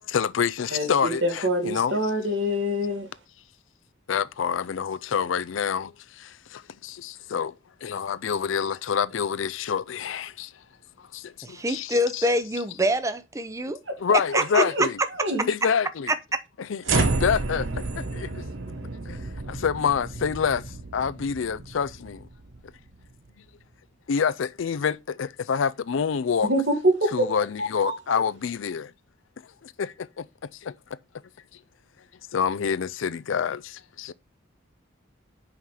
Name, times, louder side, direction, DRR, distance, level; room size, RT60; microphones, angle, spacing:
voice 1, 0.1-2.0 4.1-7.5 7.8-10.5 11.1-12.3 14.0-15.0 15.5-16.1 16.7-18.4 19.1-20.6 20.9-22.3 24.1-26.5 27.1-28.9 29.6-30.3 30.5-30.7 32.3-34.1, left 6 dB, 80° left, 0.4 m, -27 dB
voice 2, 0.7-3.1 13.9-14.0 14.5-14.9 15.1-15.5 26.4-27.3 27.6-28.0, equal, 65° right, 2.1 m, -25 dB
voice 3, 11.4-13.8 14.3-14.6 16.1-16.4, equal, 15° right, 0.6 m, -25 dB
sound 1, 16.8-23.2, right 3 dB, 80° right, 1.0 m, -30 dB
5.8 x 4.9 x 5.7 m
head